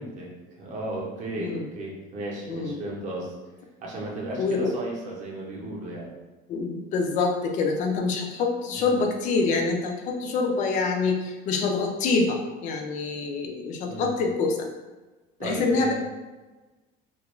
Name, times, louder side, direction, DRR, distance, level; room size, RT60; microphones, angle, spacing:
voice 1, 0.0-3.3 3.8-6.1 8.8-8.9 13.9-14.1 15.4-15.9, right 1 dB, 40° right, -3 dB, 0.7 m, -34 dB
voice 2, 4.4-4.7 6.5-14.6 15.4-15.9, left 4 dB, 40° left, 2 dB, 0.4 m, -26 dB
2.4 x 2.2 x 2.9 m, 1.2 s
cardioid pair, 170°, 20 cm